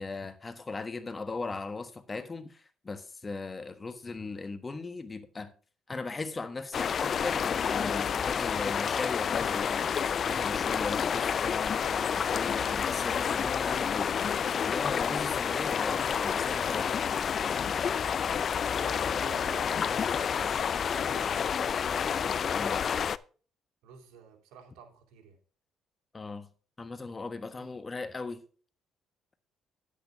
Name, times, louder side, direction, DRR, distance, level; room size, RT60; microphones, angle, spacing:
voice 1, 0.0-5.5 5.9-9.9 10.2-14.2 14.6-16.9 22.5-22.9 26.1-26.5 26.8-28.4, left 3 dB, 25° left, 1.3 m, -38 dB
sound 1, 6.7-23.2, left 7 dB, 45° left, 0.4 m, -29 dB
voice 2, 18.7-21.7 23.8-25.4 27.6-27.7, right 7 dB, 85° right, 2.5 m, -51 dB
10.5 x 8.6 x 3.5 m
cardioid pair, 95°, 0 cm